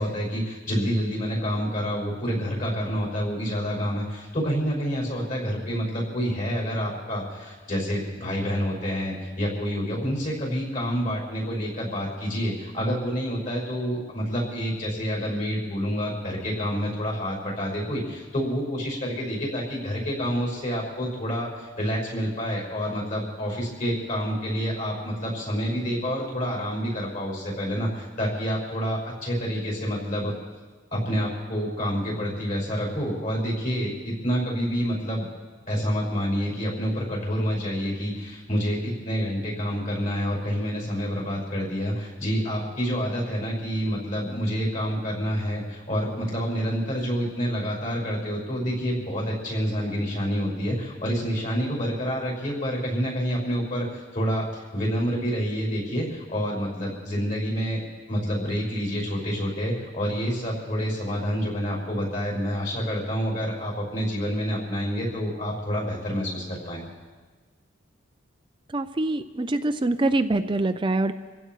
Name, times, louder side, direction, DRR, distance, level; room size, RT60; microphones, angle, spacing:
voice 1, 0.0-30.3 30.9-35.3 35.7-57.8 58.1-66.8, equal, 40° left, -2 dB, 5.8 m, -28 dB
voice 2, 68.7-71.1, right 2 dB, 25° right, 10 dB, 0.4 m, -24 dB
27.5 x 15.5 x 3.1 m, 1.3 s
head